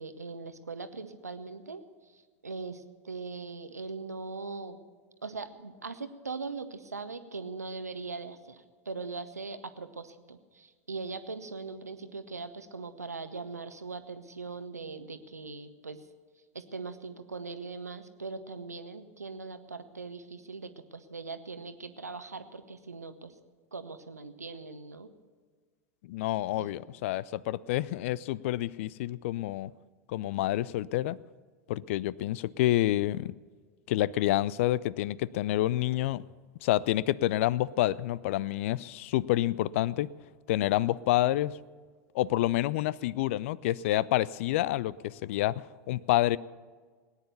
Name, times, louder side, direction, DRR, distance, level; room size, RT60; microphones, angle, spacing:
voice 1, 0.0-4.8 5.2-16.1 16.5-23.3 23.7-25.1 26.6-26.7, right 4 dB, 80° right, 10 dB, 1.0 m, -40 dB
voice 2, 26.0-29.7 30.1-31.2 31.7-33.3 33.9-36.2 36.6-40.1 40.5-41.6 42.1-46.4, left 15 dB, 55° left, 23 dB, 0.4 m, -28 dB
18.5 x 9.9 x 6.8 m, 1.5 s
figure-of-eight pair, 85°, 8 cm